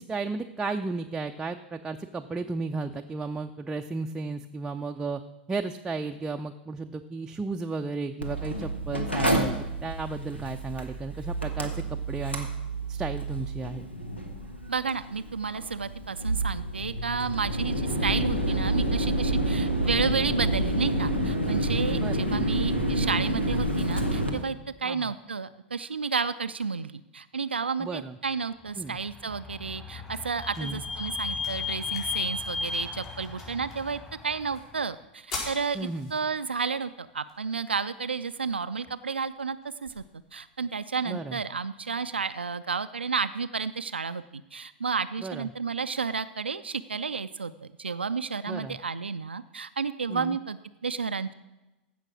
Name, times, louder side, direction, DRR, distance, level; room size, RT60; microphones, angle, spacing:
voice 1, 0.0-5.2 5.5-12.5 12.9-13.9 21.9-22.3 24.8-25.1 27.8-28.2 28.8-29.0 30.6-30.8 35.7-36.1 41.1-41.4 45.2-45.5 48.5-48.8 50.1-50.4, right 3 dB, 10° right, 4 dB, 0.5 m, -34 dB
Mechanical fan, 8.2-24.3, right 1 dB, 90° left, 1.5 m, -29 dB
voice 2, 14.7-40.0 40.3-51.3, right 5 dB, 80° right, 12 dB, 0.3 m, -31 dB
Vehicle / Squeak, 29.0-34.6, left 5 dB, 15° left, 1.8 m, -35 dB
sound 1, 29.5-41.5, left 3 dB, 50° left, 4.5 m, -47 dB
15.5 x 5.9 x 6.0 m, 1.0 s
figure-of-eight pair, 90°, 6 cm